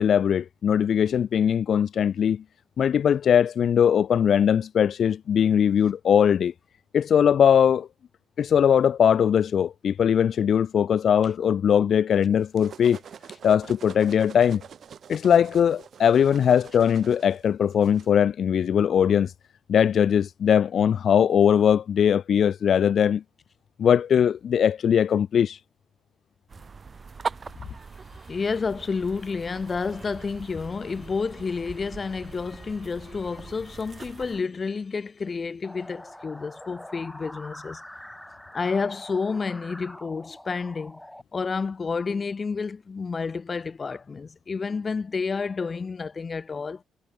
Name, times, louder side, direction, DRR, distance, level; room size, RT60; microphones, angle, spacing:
voice 1, 0.0-2.4 2.8-6.5 6.9-7.9 8.4-13.0 13.4-14.6 15.1-19.3 19.7-23.2 23.8-25.6, left 8 dB, 60° left, 0.6 m, -20 dB
sound 1, 12.2-18.1, right 8 dB, 55° right, 1.6 m, -46 dB
sound 2, 26.5-34.4, right 4 dB, 35° right, 4.7 m, -41 dB
voice 2, 28.3-37.8 38.5-41.0 41.3-46.8, left 4 dB, 35° left, 2.4 m, -30 dB
sound 3, 35.6-41.2, left 1 dB, 5° left, 3.0 m, -44 dB
cardioid pair, 90°, 0 cm